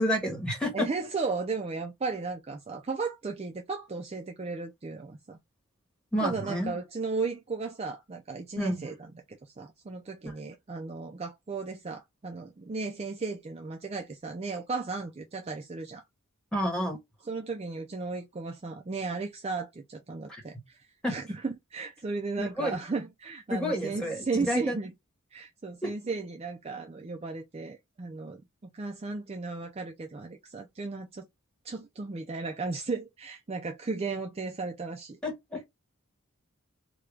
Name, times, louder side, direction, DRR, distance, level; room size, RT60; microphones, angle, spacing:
voice 1, 0.0-0.9 6.1-6.7 8.6-8.8 16.5-17.0 20.3-20.4 21.0-21.1 22.4-22.7 23.5-24.2 24.5-24.8 25.8-25.9 35.2-35.6, equal, 5° left, 1.2 m, -29 dB
voice 2, 0.7-5.4 6.2-16.0 17.2-24.9 25.3-28.4 28.7-31.3 31.6-35.2, right 4 dB, 30° right, 0.4 m, -35 dB
3.7 x 2.3 x 3.2 m
head